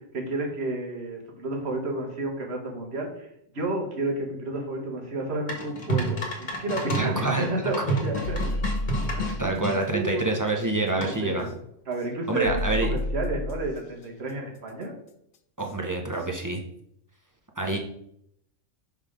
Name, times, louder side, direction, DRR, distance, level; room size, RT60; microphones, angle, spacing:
voice 1, 0.0-3.3 3.5-8.6 9.1-9.4 9.7-10.3 11.0-11.4 11.9-14.9, right 2 dB, 50° right, 2 dB, 1.4 m, -31 dB
sound 1, 5.5-9.8 11.0-11.4, right 1 dB, 35° left, 1.3 m, -30 dB
voice 2, 6.9-7.5 9.4-11.5 12.3-12.9 15.6-16.6 17.6-17.8, right 2 dB, 25° right, 1 dB, 0.4 m, -27 dB
sound 2, 8.2-9.5 11.4-11.5 12.4-13.8 15.6-15.7 16.2-16.3, left 1 dB, 75° left, 1.0 m, -30 dB
5.9 x 3.7 x 4.9 m, 0.73 s
omnidirectional pair, 1.4 m